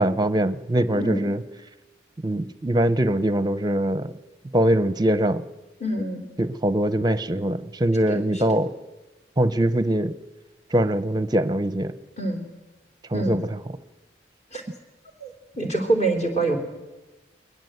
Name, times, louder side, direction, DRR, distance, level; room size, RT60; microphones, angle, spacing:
voice 1, 0.0-1.4 2.2-4.1 4.5-5.4 6.4-8.7 9.4-10.2 10.7-11.9 13.1-13.4, right 1 dB, 20° right, 15 dB, 0.7 m, -22 dB
voice 2, 5.8-6.2 8.1-8.2 12.2-12.4 13.1-13.4 14.5-14.6 15.2-16.6, right 2 dB, 35° left, 5 dB, 3.4 m, -25 dB
21.0 x 20.0 x 8.0 m, 1.1 s
head